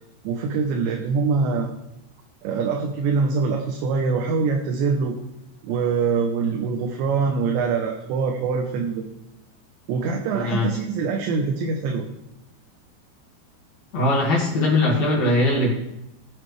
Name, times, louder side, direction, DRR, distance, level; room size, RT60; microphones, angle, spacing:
voice 1, 0.2-1.7 2.4-5.2 5.6-9.0 9.9-12.1, right 5 dB, 80° right, 2 dB, 3.1 m, -24 dB
voice 2, 10.3-10.7 13.9-15.7, left 2 dB, 50° left, -3 dB, 2.5 m, -20 dB
19.5 x 7.4 x 3.3 m, 0.86 s
omnidirectional pair, 5.3 m